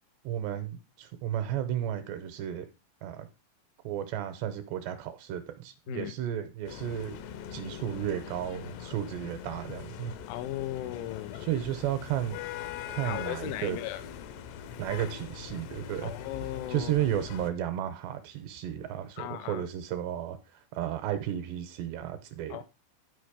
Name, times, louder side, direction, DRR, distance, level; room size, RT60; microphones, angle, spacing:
voice 1, 0.2-2.7 3.0-3.3 3.8-7.2 7.5-10.1 11.4-12.4 12.9-13.8 14.8-16.1 16.7-22.6, right 11 dB, 80° right, 2.8 m, -33 dB
sound 1, 6.7-17.5, left 9 dB, 75° left, 2.8 m, -42 dB
voice 2, 10.3-11.5 13.0-14.0 16.0-16.9 19.2-19.7 22.5-22.6, left 13 dB, 90° left, 3.2 m, -36 dB
12.0 x 5.2 x 5.1 m
omnidirectional pair, 5.4 m